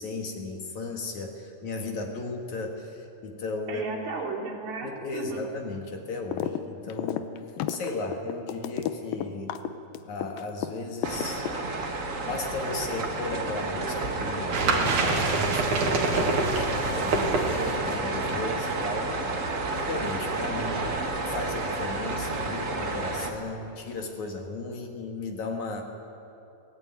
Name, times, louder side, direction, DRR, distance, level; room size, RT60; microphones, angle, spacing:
voice 1, 0.0-3.9 4.8-7.3 7.7-9.6 10.1-11.5 12.2-17.3 17.8-19.2 19.7-21.0 21.3-25.8, left 3 dB, 55° left, 2 dB, 3.1 m, -35 dB
voice 2, 3.7-5.4 9.6-9.7 17.3-17.7, right 4 dB, 75° right, -3 dB, 5.4 m, -35 dB
sound 1, 6.3-6.6 6.9-10.7 11.0-11.9, left 11 dB, 75° left, 2.6 m, -31 dB
sound 2, 11.0-23.3, right 3 dB, 40° right, 1.1 m, -30 dB
sound 3, 14.5-18.0 18.4-18.5 18.8-19.0 19.4-19.5 19.9-21.0, right 3 dB, 55° right, 3.4 m, -27 dB
23.5 x 18.0 x 9.5 m, 2.8 s
omnidirectional pair, 4.2 m